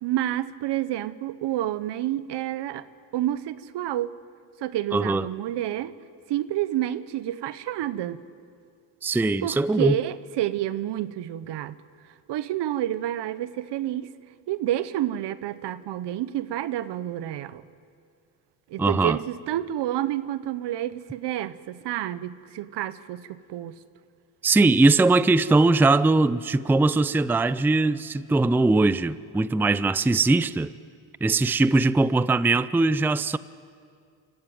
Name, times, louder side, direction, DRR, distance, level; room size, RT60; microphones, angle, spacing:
voice 1, 0.0-2.8 3.1-4.1 4.6-5.9 6.3-8.2 9.4-11.8 12.3-14.1 14.5-17.6 18.7-23.7, right 13 dB, 65° right, 1.0 m, -29 dB
voice 2, 4.9-5.2 9.0-10.0 18.8-19.2 24.4-30.7 31.2-33.4, right 3 dB, 5° right, 0.5 m, -21 dB
26.5 x 14.5 x 9.1 m
supercardioid pair, 70°, 44 cm